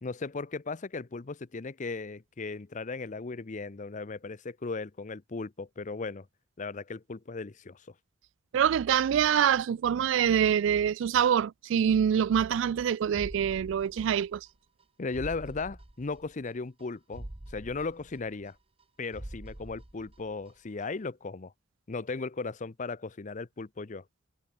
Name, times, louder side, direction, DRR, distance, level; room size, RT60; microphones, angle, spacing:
voice 1, 0.0-6.3 6.6-7.9 15.0-18.6 19.0-21.5 21.9-24.0, left 3 dB, 40° left, 0.6 m, -37 dB
voice 2, 8.5-14.5, right 8 dB, 65° right, 0.3 m, -25 dB
sound 1, 13.1-14.5 14.8-14.9 15.1-16.5 16.8-16.9 17.1-18.8 19.1-20.5 20.8-20.9, right 1 dB, 30° right, 1.2 m, -45 dB
head